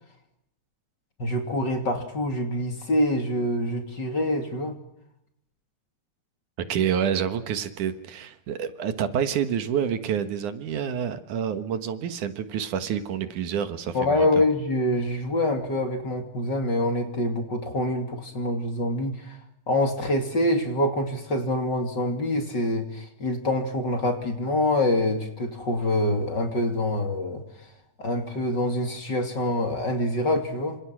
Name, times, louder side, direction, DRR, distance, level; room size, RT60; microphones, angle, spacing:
voice 1, 1.2-4.8 13.9-19.4 19.7-27.4 28.0-30.8, left 1 dB, 35° left, 5 dB, 3.1 m, -25 dB
voice 2, 6.7-14.3, right 8 dB, 75° right, 10 dB, 2.9 m, -28 dB
28.0 x 26.5 x 6.1 m, 0.79 s
omnidirectional pair, 3.7 m